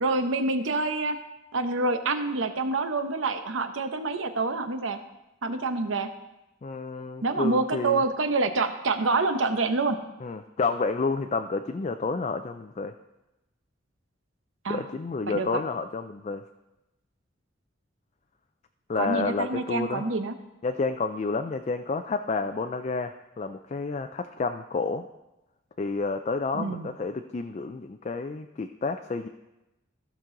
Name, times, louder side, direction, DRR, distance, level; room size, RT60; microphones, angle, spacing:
voice 1, 0.0-1.2 1.5-5.0 5.4-6.1 7.2-10.0 14.6-14.8 15.3-15.6 19.0-20.3 26.5-26.9, right 3 dB, 85° right, 9 dB, 0.8 m, -27 dB
voice 2, 6.6-8.0 10.2-12.9 14.7-16.4 18.9-20.1 20.6-25.1 25.8-29.3, left 4 dB, 35° left, 7 dB, 0.4 m, -30 dB
14.5 x 6.1 x 3.8 m, 0.96 s
head